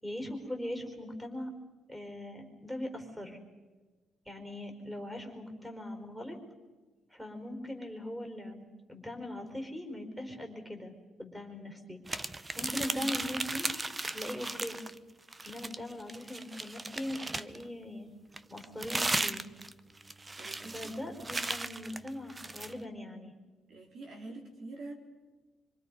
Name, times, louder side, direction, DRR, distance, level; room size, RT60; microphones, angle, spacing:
voice 1, 0.0-1.5 1.9-3.4 4.3-6.4 7.1-8.6 8.9-12.0 12.6-13.7 14.0-14.8 15.4-18.1 18.5-19.4 20.6-23.3, left 1 dB, 5° right, 5 dB, 4.7 m, -40 dB
sound 1, 12.1-15.0 15.3-17.6 18.3-22.7, right 2 dB, 20° right, 0.9 m, -36 dB
voice 2, 20.4-20.8 23.7-24.9, right 2 dB, 60° right, 2 dB, 4.2 m, -45 dB
26.0 x 25.5 x 5.4 m, 1.3 s
cardioid pair, 90°, 0 cm